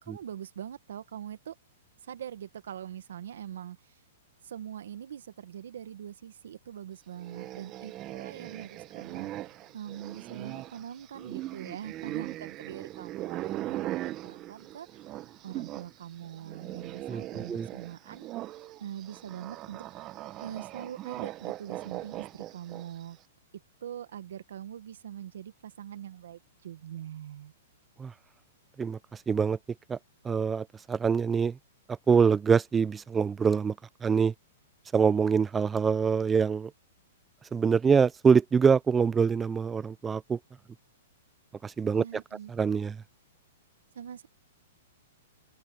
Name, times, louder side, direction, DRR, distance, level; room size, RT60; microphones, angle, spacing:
voice 1, 0.0-1.6 2.0-4.0 4.4-9.3 9.7-14.9 15.4-18.3 18.8-19.8 20.4-23.2 23.8-27.5 41.9-42.5 44.0-44.3, right 10 dB, 75° right, 1.6 m, -43 dB
sound 1, 7.2-15.9 16.2-23.0, right 15 dB, 30° right, 0.9 m, -39 dB
voice 2, 17.1-17.7 28.0-28.1 28.8-29.6 29.9-30.0 30.2-31.6 31.9-33.8 34.0-34.3 34.9-36.7 37.5-40.4 41.6-42.0 42.5-43.0, right 6 dB, 15° right, 0.4 m, -25 dB
open air
hypercardioid pair, 145°, 0 cm